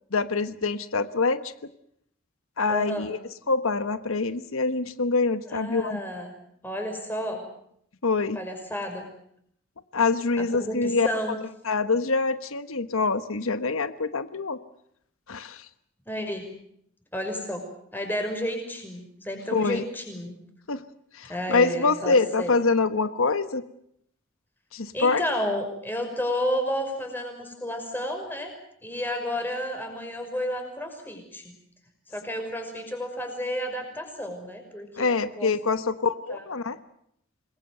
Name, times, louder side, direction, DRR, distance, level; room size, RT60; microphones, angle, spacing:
voice 1, 0.1-1.5 2.6-3.2 3.5-6.0 8.0-8.4 9.9-11.1 11.6-14.6 15.3-15.7 19.5-19.8 20.7-20.8 21.1-23.6 24.7-25.2 35.0-36.8, left 4 dB, 90° left, 12 dB, 1.2 m, -25 dB
voice 2, 2.7-3.1 5.5-6.3 6.6-7.4 8.3-9.1 10.5-11.4 16.1-16.5 17.1-17.6 17.9-20.3 21.3-22.5 24.9-28.5 28.8-31.5 32.1-35.9 36.3-36.5, equal, 10° left, 4 dB, 5.9 m, -31 dB
27.0 x 21.0 x 7.9 m, 0.71 s
head